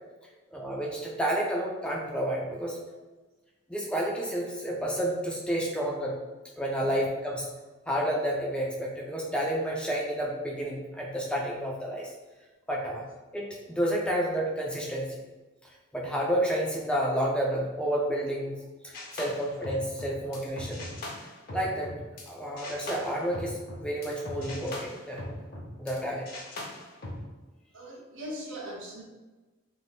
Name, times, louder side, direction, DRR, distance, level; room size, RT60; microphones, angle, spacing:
voice 1, 0.5-2.8 3.7-6.2 6.6-7.5 7.9-12.1 12.7-13.0 13.3-15.2 15.9-18.5 18.8-20.9 21.5-21.9 22.3-25.3 25.8-26.3, equal, 5° left, -3 dB, 0.3 m, -30 dB
sound 1, 18.9-22.3 22.6-26.0 26.3-27.2, left 1 dB, 45° left, 0.6 m, -40 dB
voice 2, 27.7-29.0, equal, 65° right, -3 dB, 0.8 m, -40 dB
2.6 x 2.5 x 3.4 m, 1.2 s
head